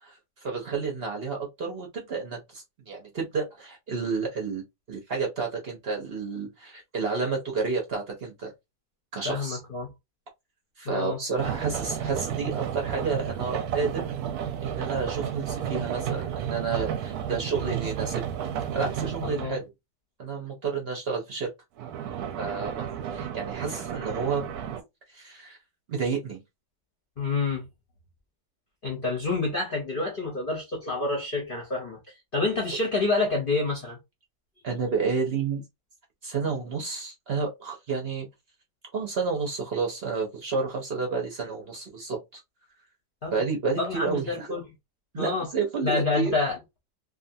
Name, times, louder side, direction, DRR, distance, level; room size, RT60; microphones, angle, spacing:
voice 1, 0.0-4.6 4.9-8.5 9.1-9.6 10.8-14.0 14.6-18.2 18.6-19.6 20.2-21.5 22.4-24.5 25.1-25.6 25.9-26.4 34.6-35.6 36.2-38.3 38.9-42.4 43.3-44.5 45.1-46.3, right 4 dB, 55° right, 0.7 m, -30 dB
voice 2, 9.2-9.9 10.8-11.2 19.2-19.6 27.2-27.6 28.8-32.0 32.3-34.0 43.2-43.4 43.8-44.6 45.2-45.5 45.8-46.6, left 3 dB, 45° left, 0.7 m, -28 dB
sound 1, 11.4-19.6 21.8-24.8, right 9 dB, 75° right, 1.0 m, -32 dB
2.7 x 2.4 x 2.6 m
omnidirectional pair, 1.8 m